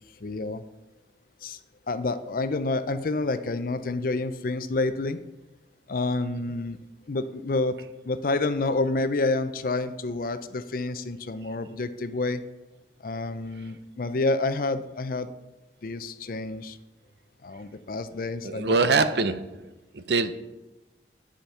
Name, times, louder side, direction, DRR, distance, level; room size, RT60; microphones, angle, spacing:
voice 1, 0.2-0.6 1.4-1.6 1.9-5.2 5.9-6.8 7.1-7.8 8.0-12.4 13.0-15.3 15.8-16.8 17.4-19.1, left 2 dB, 50° left, 12 dB, 0.5 m, -28 dB
voice 2, 18.4-19.6 19.9-20.3, right 3 dB, 70° right, 11 dB, 0.7 m, -23 dB
10.5 x 5.1 x 5.7 m, 1.0 s
head